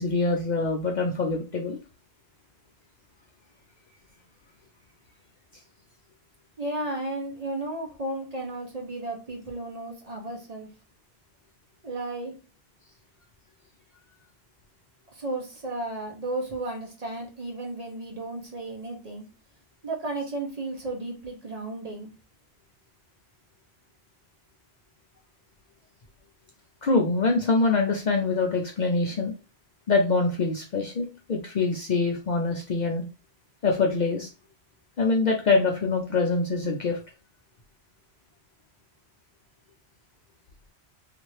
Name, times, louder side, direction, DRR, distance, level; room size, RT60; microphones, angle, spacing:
voice 1, 0.0-1.8 26.8-29.3 29.9-33.0 33.6-34.3 35.0-37.0, left 3 dB, 55° left, 2 dB, 0.6 m, -24 dB
voice 2, 6.6-10.7 11.8-12.4 15.1-19.2 19.8-22.1, right 2 dB, 40° right, 1 dB, 0.7 m, -34 dB
2.7 x 2.5 x 3.0 m, 0.30 s
omnidirectional pair, 1.1 m